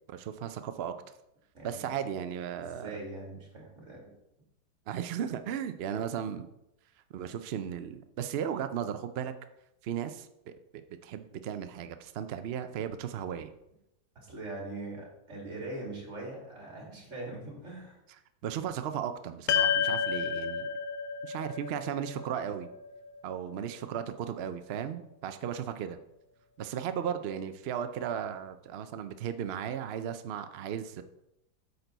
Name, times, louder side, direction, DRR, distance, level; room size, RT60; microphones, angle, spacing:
voice 1, 0.1-0.9 1.6-3.0 4.9-6.5 7.1-9.3 9.8-13.5 18.4-20.7 21.2-22.7 23.2-26.0 26.6-31.0, right 9 dB, 75° right, 9 dB, 0.5 m, -36 dB
voice 2, 1.5-1.9 2.6-4.1 14.1-18.0, right 2 dB, 45° right, -2 dB, 2.8 m, -42 dB
sound 1, 19.5-23.9, left 7 dB, 70° left, 1.1 m, -31 dB
8.8 x 6.8 x 3.9 m, 0.85 s
omnidirectional pair, 1.7 m